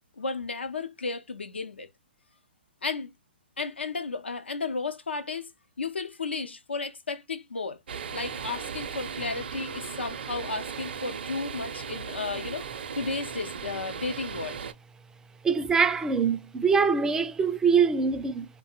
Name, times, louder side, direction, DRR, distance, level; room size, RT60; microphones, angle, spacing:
voice 1, 0.2-1.9 2.8-3.1 3.6-5.5 5.8-7.8 8.1-12.7 13.0-14.6, left 4 dB, 85° left, 0.6 m, -33 dB
sound 1, 7.9-14.7, right 6 dB, 65° right, 0.5 m, -37 dB
voice 2, 15.4-18.5, right 5 dB, 10° right, 0.3 m, -23 dB
2.5 x 2.1 x 2.9 m
figure-of-eight pair, 125°, 6 cm